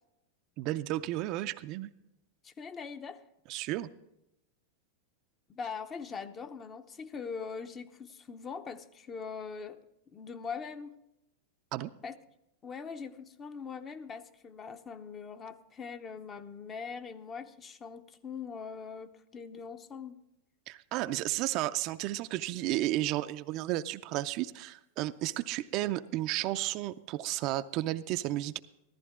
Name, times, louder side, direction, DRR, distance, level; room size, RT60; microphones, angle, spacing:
voice 1, 0.6-1.9 3.5-3.9 11.7-11.9 20.7-28.6, right 15 dB, 50° right, 11 dB, 0.5 m, -33 dB
voice 2, 2.4-3.2 5.5-9.8 10.1-10.9 12.0-12.2 12.6-20.2, left 5 dB, 25° left, 9 dB, 0.8 m, -42 dB
14.0 x 14.0 x 3.7 m, 0.88 s
hypercardioid pair, 115°, 0 cm